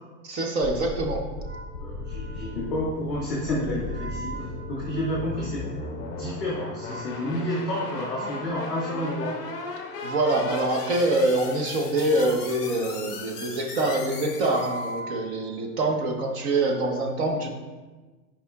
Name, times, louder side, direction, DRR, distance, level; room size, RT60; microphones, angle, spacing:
voice 1, 0.2-1.2 10.0-17.5, right 2 dB, 45° right, 2 dB, 0.9 m, -25 dB
sound 1, 0.6-15.0, left 3 dB, 25° left, 0.7 m, -37 dB
Wind instrument woodwind instrument, 1.3-16.0, right 1 dB, 90° right, 1.9 m, -43 dB
voice 2, 1.8-5.7 5.9-9.4, left 1 dB, 5° right, -16 dB, 0.3 m, -30 dB
10.5 x 5.0 x 2.3 m, 1.3 s
supercardioid pair, 175°, 48 cm